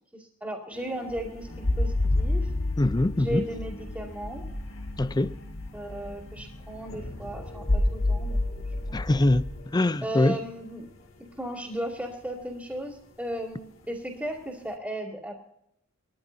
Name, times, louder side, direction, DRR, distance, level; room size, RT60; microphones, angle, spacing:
voice 1, 0.1-1.5 1.8-2.5 3.2-4.4 5.7-9.0 10.0-10.9 11.4-15.4, right 1 dB, 5° right, 2.6 m, -35 dB
sound 1, 0.7-14.8, left 1 dB, 70° left, 2.4 m, -48 dB
sound 2, 1.1-9.6, left 2 dB, 35° left, 1.0 m, -29 dB
voice 2, 2.8-3.4 5.0-5.4 8.9-10.4, left 2 dB, 20° left, 0.5 m, -23 dB
22.0 x 14.0 x 2.7 m
head